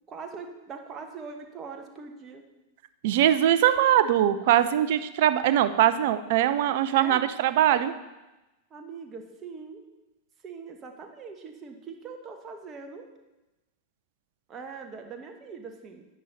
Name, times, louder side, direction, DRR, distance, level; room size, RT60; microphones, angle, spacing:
voice 1, 0.1-2.4 6.7-7.3 8.7-9.8 10.4-13.1 14.5-16.0, right 5 dB, 25° right, 4 dB, 1.4 m, -42 dB
voice 2, 3.0-7.9, right 11 dB, 50° right, 12 dB, 0.6 m, -22 dB
10.0 x 9.7 x 4.1 m, 1.0 s
figure-of-eight pair, 90°, 0 cm